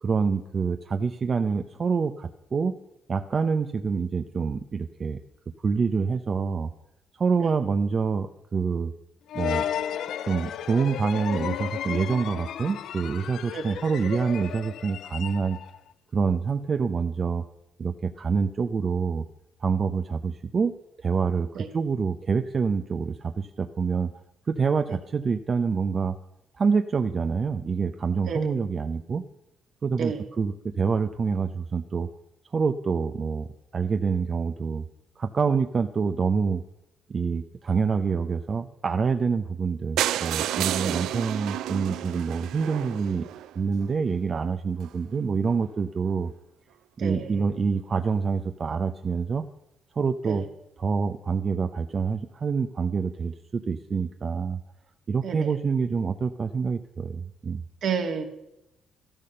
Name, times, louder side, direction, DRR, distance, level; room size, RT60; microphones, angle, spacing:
voice 1, 0.0-2.8 3.1-5.2 5.6-6.7 7.2-8.9 9.3-9.6 10.3-15.6 16.1-17.4 17.8-19.2 19.6-20.7 21.0-24.1 24.5-26.2 26.6-29.2 29.8-32.1 32.5-33.5 33.7-34.8 35.2-36.6 37.1-43.3 43.5-46.3 47.0-49.4 50.0-50.4 50.8-54.6 55.1-57.6, right 5 dB, 40° right, 7 dB, 0.7 m, -26 dB
sound 1, 9.3-15.8, left 10 dB, 75° left, 0.5 m, -33 dB
sound 2, 40.0-43.9 44.5-44.6 44.8-45.0 45.2-45.3 45.5-45.6, right 13 dB, 85° right, 0.4 m, -30 dB
voice 2, 47.0-47.4 50.2-50.4 55.2-55.5 57.8-58.2, right 6 dB, 65° right, 3 dB, 2.4 m, -31 dB
13.5 x 12.5 x 6.8 m, 0.88 s
cardioid pair, 90°, 0 cm